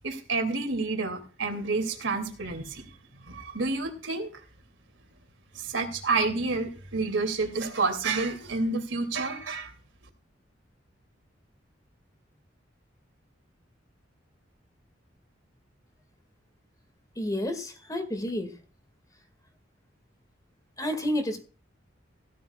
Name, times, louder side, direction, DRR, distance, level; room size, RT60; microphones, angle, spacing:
voice 1, 0.0-2.9 3.3-4.3 5.5-9.7, right 3 dB, 90° right, 5 dB, 2.8 m, -29 dB
voice 2, 17.2-18.6 20.8-21.4, left 1 dB, 20° left, 7 dB, 2.2 m, -30 dB
16.5 x 12.5 x 2.4 m, 0.37 s
head